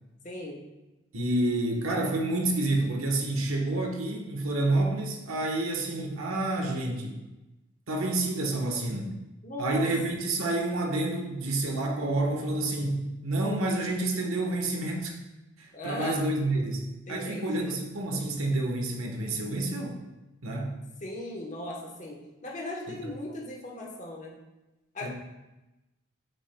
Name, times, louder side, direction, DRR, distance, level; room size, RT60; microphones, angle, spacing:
voice 1, 0.2-0.6 9.4-9.8 15.7-16.2 17.1-17.7 21.0-24.3 24.9-25.1, left 1 dB, 35° left, -2 dB, 1.0 m, -38 dB
voice 2, 1.1-7.2 7.9-9.1 9.6-15.2 15.6-20.0 20.4-20.8 22.9-23.1 25.0-25.1, right 2 dB, 90° right, 1 dB, 1.2 m, -29 dB
8.9 x 6.2 x 2.3 m, 1.0 s
head